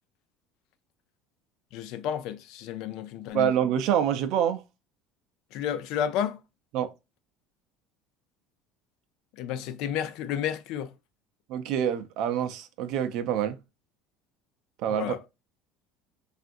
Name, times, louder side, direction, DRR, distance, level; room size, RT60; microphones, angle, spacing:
voice 1, 1.7-3.5 5.5-6.4 9.4-10.9 14.9-15.2, left 9 dB, 70° left, 0.4 m, -31 dB
voice 2, 3.3-4.6 6.7-6.9 11.5-13.6 14.8-15.1, right 9 dB, 65° right, 0.5 m, -26 dB
3.5 x 2.5 x 2.5 m
cardioid pair, 120°, 0 cm